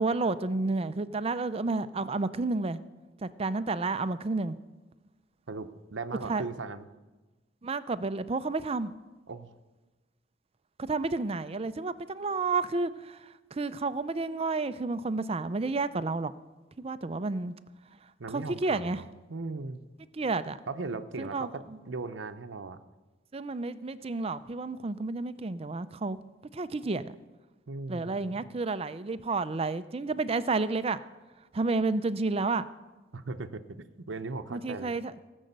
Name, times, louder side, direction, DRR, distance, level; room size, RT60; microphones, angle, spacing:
voice 1, 0.0-2.8 3.2-4.6 6.2-6.4 7.6-8.9 10.8-16.3 16.8-17.5 18.3-19.0 20.1-20.6 21.2-21.8 23.3-26.2 26.5-27.1 27.9-31.0 31.5-32.6 34.5-35.1, right 3 dB, 30° right, 13 dB, 0.5 m, -31 dB
voice 2, 5.5-6.9 9.3-9.5 18.2-19.8 20.7-22.8 27.7-28.4 33.1-34.9, right 3 dB, 90° right, 9 dB, 0.8 m, -38 dB
18.0 x 6.4 x 8.0 m, 1.2 s
head